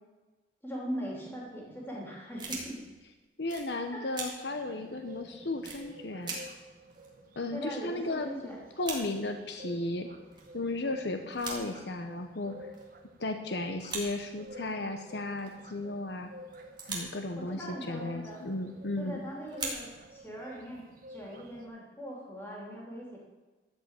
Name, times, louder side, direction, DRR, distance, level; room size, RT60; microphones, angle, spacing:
voice 1, 0.6-2.8 3.9-4.0 7.5-8.6 17.4-18.4 19.0-23.2, equal, 10° left, -4 dB, 3.2 m, -40 dB
sound 1, 1.4-1.6 2.4-3.0 3.5-3.7 4.1-4.3 4.8-4.9 5.6-5.8 6.2-6.4 6.6-6.7 6.9-8.0 8.2-8.3 8.6-9.0 9.8-9.9 10.3-10.6 11.2-11.6 12.7-13.0 13.8-14.0 14.3-14.9 15.4-15.7 16.5-17.2 18.3-18.5 19.4-20.2, right 4 dB, 25° right, 2.2 m, -40 dB
voice 2, 3.4-6.4 7.4-8.3 8.8-10.1 10.5-12.6 13.2-16.3 16.9-19.2, left 2 dB, 70° left, 6 dB, 0.9 m, -35 dB
sound 2, 4.5-21.7, equal, 50° right, 1.3 m, -51 dB
13.5 x 5.5 x 8.2 m, 1.2 s
head